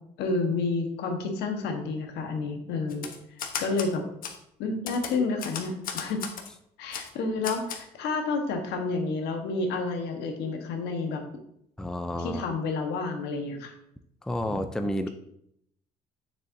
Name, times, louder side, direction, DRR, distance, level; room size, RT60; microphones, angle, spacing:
voice 1, 0.2-3.1 3.6-4.0 4.6-6.2 6.8-11.2 12.2-13.7, left 3 dB, 80° left, 4 dB, 1.3 m, -30 dB
Typewriter, 2.9-3.9 4.2-4.4 4.9-6.5 6.9-7.1 7.4-7.8, left 7 dB, 60° left, 1.0 m, -35 dB
voice 2, 11.8-12.5 14.2-15.1, left 1 dB, 5° left, 8 dB, 0.4 m, -30 dB
6.9 x 6.7 x 2.7 m, 0.73 s
cardioid pair, 110°, 17 cm